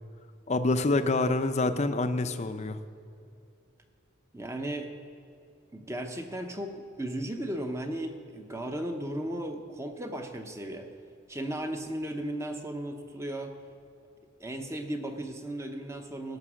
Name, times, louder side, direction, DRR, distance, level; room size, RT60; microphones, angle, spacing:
voice 1, 0.5-2.8, left 2 dB, 35° left, 10 dB, 0.5 m, -26 dB
voice 2, 4.3-4.9 5.7-10.9 11.3-13.5 14.4-16.4, right 1 dB, 15° right, 5 dB, 0.7 m, -35 dB
17.0 x 6.0 x 6.2 m, 2.6 s
head